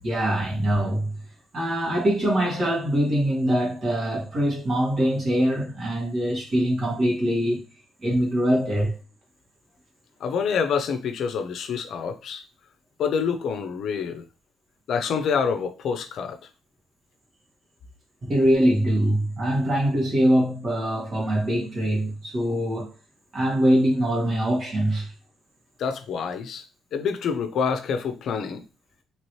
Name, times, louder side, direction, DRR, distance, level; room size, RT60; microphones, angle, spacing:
voice 1, 0.0-1.1 1.5-7.7 8.0-9.0 18.2-22.9 23.3-25.1, equal, 45° right, 1.6 m, -23 dB
voice 2, 10.2-12.4 13.0-14.3 14.9-16.4 25.8-26.6 26.9-28.6, left 6 dB, 70° left, 0.5 m, -27 dB
3.0 x 2.8 x 3.1 m
cardioid pair, 90°, 0 cm